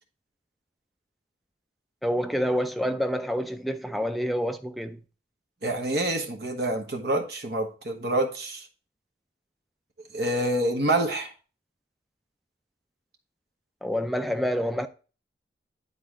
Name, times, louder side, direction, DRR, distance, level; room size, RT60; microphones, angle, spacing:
voice 1, 2.0-5.0 13.8-14.9, equal, ahead, 0.3 m, -27 dB
voice 2, 5.6-8.6 10.1-11.3, right 1 dB, 65° right, 1.3 m, -27 dB
10.0 x 4.0 x 3.7 m
head